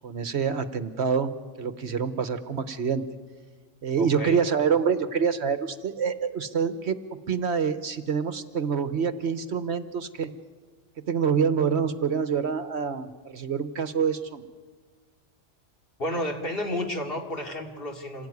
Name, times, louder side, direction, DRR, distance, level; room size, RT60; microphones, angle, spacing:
voice 1, 0.0-1.3 1.6-3.0 3.8-7.0 7.3-10.3 11.0-14.4, right 6 dB, 60° right, 12 dB, 1.2 m, -26 dB
voice 2, 3.9-4.4 16.0-18.3, left 1 dB, 45° left, 3 dB, 2.8 m, -31 dB
26.5 x 17.0 x 9.5 m, 1.5 s
omnidirectional pair, 1.3 m